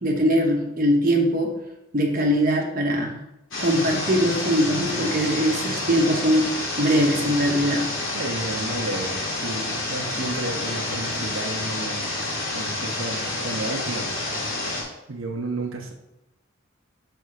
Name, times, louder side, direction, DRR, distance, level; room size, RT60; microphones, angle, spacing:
voice 1, 0.0-1.6 1.9-3.2 3.6-7.9, equal, 45° right, 0 dB, 1.0 m, -21 dB
sound 1, 3.5-14.8, left 2 dB, 75° left, 2.2 m, -29 dB
voice 2, 8.1-12.2 12.5-14.3 15.1-15.9, right 2 dB, 85° right, 1 dB, 1.0 m, -32 dB
6.5 x 3.5 x 5.8 m, 0.89 s
head